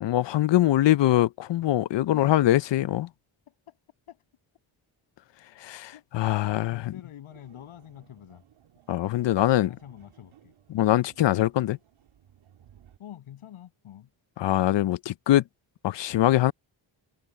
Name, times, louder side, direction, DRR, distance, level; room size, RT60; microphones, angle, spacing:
voice 1, 0.0-3.1 5.6-6.9 8.9-9.7 10.7-11.8 14.4-15.4 15.8-16.5, left 14 dB, 60° left, 0.7 m, -23 dB
voice 2, 3.5-3.8 4.1-4.2 5.9-6.0 6.4-8.4 9.4-10.5 13.0-14.1, left 11 dB, 85° left, 7.8 m, -46 dB
sound 1, 7.3-13.0, right 10 dB, 75° right, 3.4 m, -59 dB
cardioid pair, 85°, 49 cm